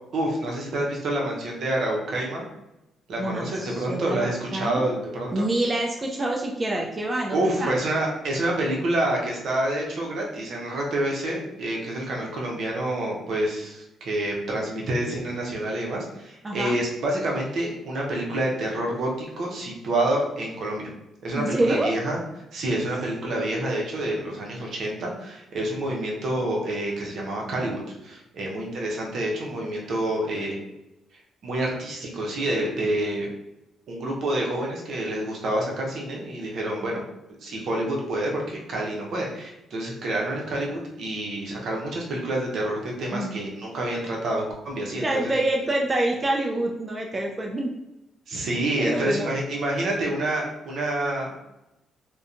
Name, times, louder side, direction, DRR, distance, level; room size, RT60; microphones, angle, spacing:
voice 1, 0.1-2.4 3.1-5.5 7.3-20.8 21.2-22.2 22.5-30.6 31.4-33.3 33.9-37.0 37.4-45.3 48.3-51.4, right 1 dB, 65° right, -2 dB, 0.7 m, -28 dB
voice 2, 3.2-4.8 5.3-7.7 16.4-16.8 21.4-21.9 43.1-43.4 45.0-47.7 48.8-49.3, right 1 dB, 25° right, 0 dB, 0.3 m, -26 dB
2.7 x 2.2 x 2.5 m, 0.91 s
cardioid pair, 90°, 0 cm